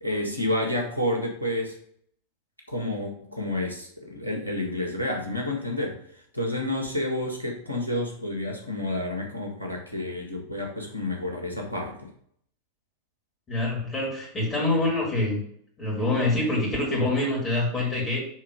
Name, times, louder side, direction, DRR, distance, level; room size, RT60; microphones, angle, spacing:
voice 1, 0.0-1.8 2.7-12.1, left 1 dB, 85° left, 0 dB, 1.6 m, -30 dB
voice 2, 13.5-15.4 15.8-18.3, left 2 dB, 20° left, -3 dB, 2.7 m, -25 dB
6.4 x 3.6 x 5.1 m, 0.65 s
figure-of-eight pair, 90°, 0 cm